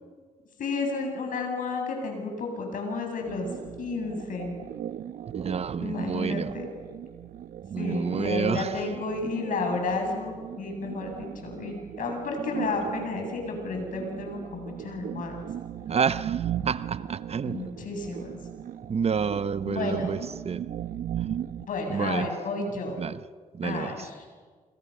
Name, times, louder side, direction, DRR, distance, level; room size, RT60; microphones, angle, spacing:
voice 1, 0.6-3.5 3.8-4.6 5.8-6.7 7.8-15.4 17.4-18.4 19.6-20.2 21.7-23.0 23.6-24.3, left 3 dB, 70° left, 7.8 m, -32 dB
sound 1, 3.3-21.7, right 10 dB, 80° right, 1.0 m, -38 dB
voice 2, 5.3-6.5 7.7-8.8 15.9-17.7 18.9-20.6 21.2-21.4 21.9-22.3 23.0-23.2 23.5-24.1, right 6 dB, 45° right, 0.9 m, -29 dB
28.5 x 28.0 x 6.7 m
cardioid pair, 80°, 14 cm